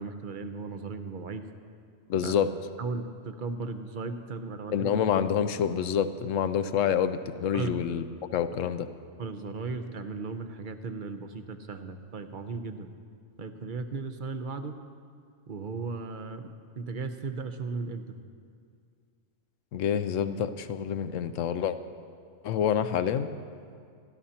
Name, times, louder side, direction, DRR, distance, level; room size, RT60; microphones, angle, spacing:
voice 1, 0.0-1.4 2.2-2.3 2.8-4.9 7.5-7.7 9.2-12.9 13.4-14.8 15.5-16.5 16.8-18.0, right 4 dB, 45° right, 8 dB, 0.8 m, -36 dB
voice 2, 2.1-2.5 4.7-8.1 8.3-8.9 19.7-21.8 22.4-23.3, left 8 dB, 75° left, 11 dB, 1.0 m, -27 dB
28.0 x 12.5 x 2.9 m, 2.2 s
omnidirectional pair, 1.4 m